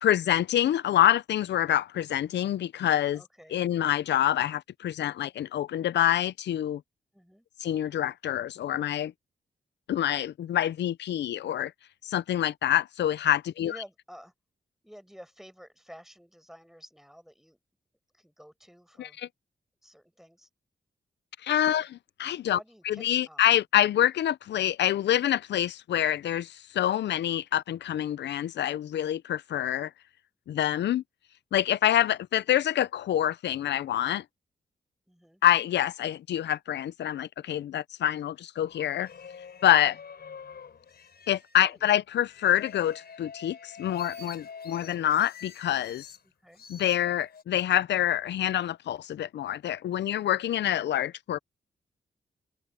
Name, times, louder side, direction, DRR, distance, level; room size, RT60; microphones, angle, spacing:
voice 1, 0.0-3.2 3.5-6.8 7.6-9.1 9.9-11.7 12.0-13.8 19.0-19.1 21.4-22.6 22.9-29.9 30.5-31.0 31.5-34.2 35.4-39.1 39.6-40.0 41.3-46.1 46.7-51.4, left 11 dB, 85° left, 0.5 m, -26 dB
voice 2, 3.1-3.6 7.1-7.4 13.6-14.3 14.8-17.6 18.1-19.2 19.8-20.5 21.7-21.9 22.4-23.5 35.1-35.4 41.6-41.8 46.2-46.6, equal, ahead, 6.3 m, -51 dB
sound 1, 38.6-41.7 42.3-46.2 46.5-47.4, left 6 dB, 65° left, 5.4 m, -46 dB
open air
cardioid pair, 70°, 18 cm